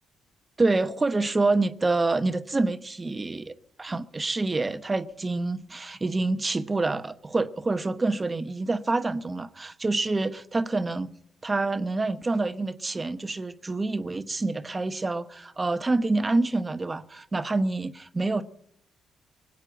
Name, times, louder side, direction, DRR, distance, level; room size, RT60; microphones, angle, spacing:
voice 1, 0.6-3.5 3.8-11.1 11.4-18.4, right 3 dB, 25° right, 1.0 m, -27 dB
19.5 x 8.5 x 7.8 m
supercardioid pair, 60°, 0 cm